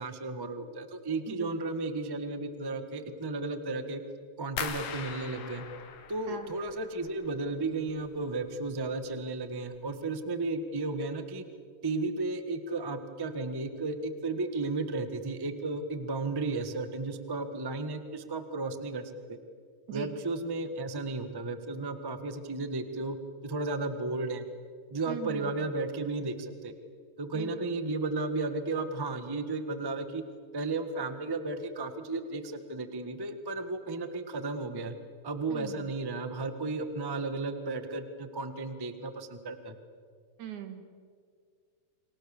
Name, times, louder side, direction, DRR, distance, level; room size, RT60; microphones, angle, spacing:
voice 1, 0.0-4.0 4.4-5.6 6.1-11.4 11.8-19.4 19.9-23.2 23.4-24.4 24.9-26.7 27.2-30.2 30.5-34.9 35.2-39.8, right 3 dB, 15° right, 9 dB, 0.8 m, -34 dB
sound 1, 4.6-7.4 7.7-8.4 8.8-9.2 9.6-9.8, left 7 dB, 85° left, 3.1 m, -40 dB
voice 2, 25.1-25.5 27.4-27.5 35.5-35.7 40.4-40.8, right 9 dB, 80° right, 8 dB, 3.4 m, -39 dB
30.0 x 25.5 x 7.2 m, 2.1 s
omnidirectional pair, 3.3 m